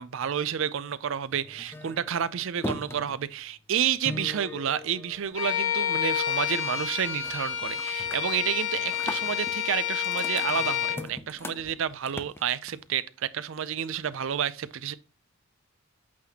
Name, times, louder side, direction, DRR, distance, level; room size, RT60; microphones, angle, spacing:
voice 1, 0.0-14.9, right 8 dB, 60° right, 0.4 m, -30 dB
sound 1, 1.3-5.8 6.2-6.6 6.9-7.3 7.7-13.0, left 2 dB, 10° left, 0.3 m, -40 dB
Bowed string instrument, 5.3-11.1, left 10 dB, 60° left, 1.1 m, -29 dB
8.5 x 4.1 x 2.8 m
head